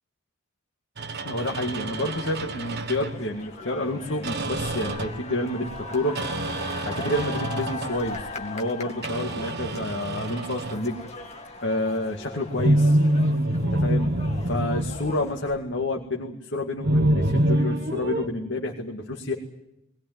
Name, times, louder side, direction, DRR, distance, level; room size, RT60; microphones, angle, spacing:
sound 1, 1.0-3.2 4.2-5.3 6.1-8.0 9.0-10.9 12.5-15.7 16.8-18.3, right 1 dB, 55° right, 1.4 m, -26 dB
voice 1, 1.2-6.2 6.8-11.0 11.6-13.0 13.7-14.1 14.4-19.3, left 1 dB, 60° left, 1 dB, 2.2 m, -29 dB
sound 2, 1.4-15.6, left 3 dB, 35° left, 2.2 m, -40 dB
21.0 x 19.5 x 9.4 m, 0.84 s
head